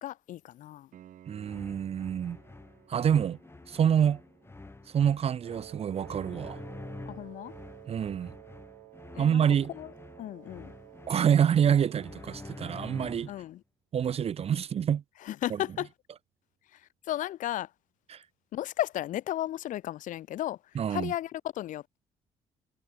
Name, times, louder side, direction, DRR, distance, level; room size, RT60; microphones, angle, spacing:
voice 1, 0.0-0.9 7.1-7.5 9.2-9.4 9.7-10.7 13.2-13.6 15.2-15.9 16.7-16.8 17.1-17.7 18.5-20.6 20.9-22.0, left 13 dB, 65° left, 0.5 m, -34 dB
Piano, 0.9-11.6 14.9-15.0, right 11 dB, 65° right, 2.4 m, -62 dB
voice 2, 1.3-2.4 2.9-3.4 3.7-4.2 4.9-6.6 7.9-8.3 9.2-9.7 11.1-13.3 13.9-15.0 18.1-18.2 20.8-21.1, right 8 dB, 45° right, 0.5 m, -26 dB
sound 1, 1.4-13.5, left 3 dB, 15° left, 0.8 m, -47 dB
Wind instrument woodwind instrument, 5.4-12.7, right 30 dB, 85° right, 1.6 m, -51 dB
hypercardioid pair, 55°, 15 cm